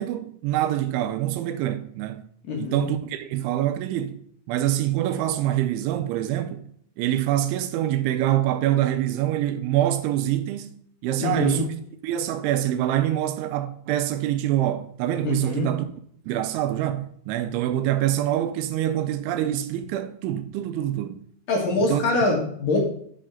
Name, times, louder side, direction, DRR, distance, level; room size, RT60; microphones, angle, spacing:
voice 1, 0.0-2.2 2.6-4.2 4.5-6.6 7.0-11.7 12.0-15.8 16.3-21.2 21.8-22.0, right 12 dB, 85° right, 3.0 m, -25 dB
voice 2, 2.4-2.9 11.2-11.6 15.2-15.7 21.5-22.8, left 3 dB, 60° left, 2.8 m, -24 dB
7.8 x 7.4 x 3.8 m
omnidirectional pair, 5.5 m